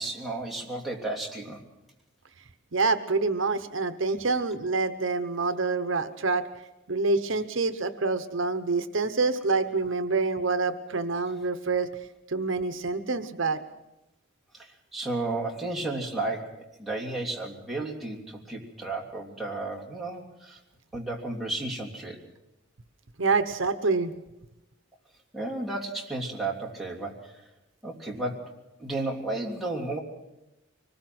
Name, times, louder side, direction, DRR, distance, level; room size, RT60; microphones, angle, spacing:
voice 1, 0.0-1.6 14.5-20.6 20.9-22.2 25.3-27.4 27.8-28.5 28.8-30.0, right 2 dB, ahead, -2 dB, 3.1 m, -33 dB
voice 2, 2.7-6.5 6.9-11.9 12.3-13.6 23.2-24.1, right 3 dB, 65° right, 10 dB, 1.0 m, -26 dB
25.0 x 20.5 x 6.1 m, 0.95 s
head